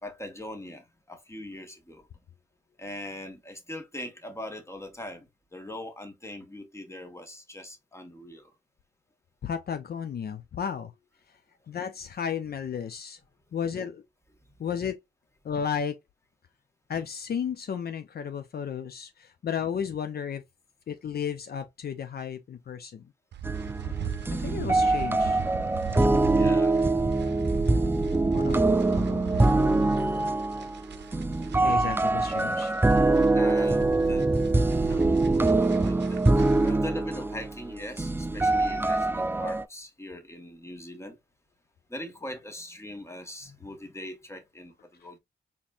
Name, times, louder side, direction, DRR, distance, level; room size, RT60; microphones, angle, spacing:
voice 1, 0.0-2.1 2.8-8.5 26.3-26.8 33.3-34.3 34.9-35.1 35.4-41.2 41.9-45.2, left 1 dB, 15° left, 1.4 m, -41 dB
voice 2, 9.4-10.9 11.7-13.2 13.5-14.0 14.6-15.0 15.4-16.0 16.9-20.4 20.9-23.1 23.8-24.1 24.4-25.4 26.5-26.6 28.3-30.3 31.6-32.7, left 7 dB, 60° left, 0.5 m, -34 dB
sound 1, 23.3-36.7, right 8 dB, 75° right, 0.6 m, -39 dB
sound 2, 23.4-39.6, right 2 dB, 10° right, 0.4 m, -24 dB
4.2 x 3.6 x 2.5 m
cardioid pair, 65°, 18 cm